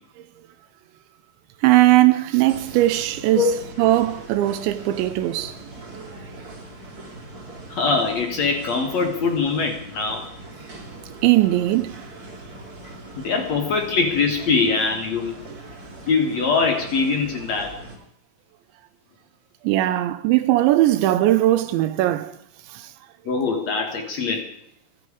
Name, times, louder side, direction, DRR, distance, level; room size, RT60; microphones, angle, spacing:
voice 1, 1.6-3.5 3.8-5.5 11.2-12.0 19.6-22.3, right 15 dB, 80° right, 2.9 m, -19 dB
sound 1, 2.5-18.0, right 2 dB, 20° right, 2.9 m, -40 dB
voice 2, 7.7-10.3 13.2-15.4 16.1-17.7 23.2-24.5, left 4 dB, 80° left, 1.5 m, -22 dB
27.0 x 10.5 x 4.9 m
omnidirectional pair, 5.7 m